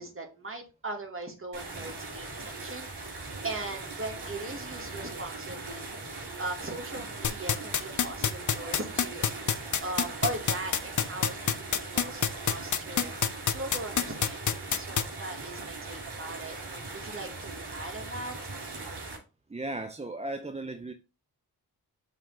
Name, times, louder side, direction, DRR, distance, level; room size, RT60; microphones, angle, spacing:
voice 1, 0.0-9.3 9.8-13.1 13.5-18.4, right 2 dB, 30° right, 2.2 m, -39 dB
sound 1, 1.5-19.2, right 3 dB, 75° right, 3.1 m, -40 dB
sound 2, 7.2-15.0, left 7 dB, 50° left, 0.7 m, -25 dB
voice 2, 19.5-20.9, right 2 dB, 15° right, 0.6 m, -36 dB
6.9 x 3.5 x 4.7 m
cardioid pair, 55°, 39 cm